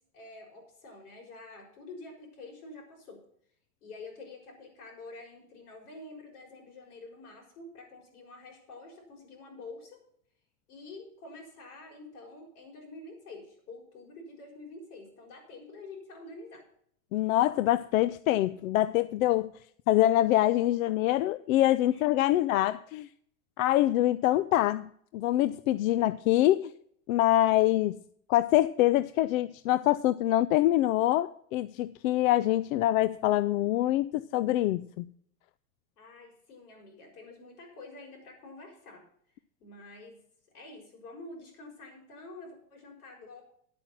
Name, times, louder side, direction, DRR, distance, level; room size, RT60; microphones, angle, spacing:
voice 1, 0.1-3.2 3.8-10.0 10.7-16.6 21.9-22.4 36.0-39.0 39.6-40.2 40.5-43.4, left 2 dB, 85° left, 1 dB, 6.3 m, -48 dB
voice 2, 17.1-19.5 19.9-23.1 23.6-24.9 25.1-26.7 27.1-28.0 28.3-35.1, left 14 dB, 65° left, 15 dB, 0.6 m, -25 dB
10.5 x 8.6 x 5.8 m, 0.65 s
supercardioid pair, 150°, 44 cm